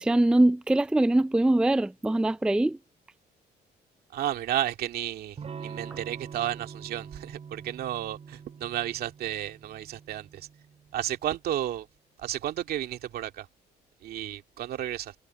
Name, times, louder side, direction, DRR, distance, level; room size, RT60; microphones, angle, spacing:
voice 1, 0.0-2.8, right 1 dB, 5° right, 0.4 m, -22 dB
voice 2, 4.1-10.5 10.9-11.9 12.2-13.5 14.0-15.1, right 12 dB, 65° right, 2.2 m, -32 dB
Electric guitar / Strum, 5.4-11.1, right 6 dB, 40° right, 5.1 m, -44 dB
cardioid pair, 110°, 17 cm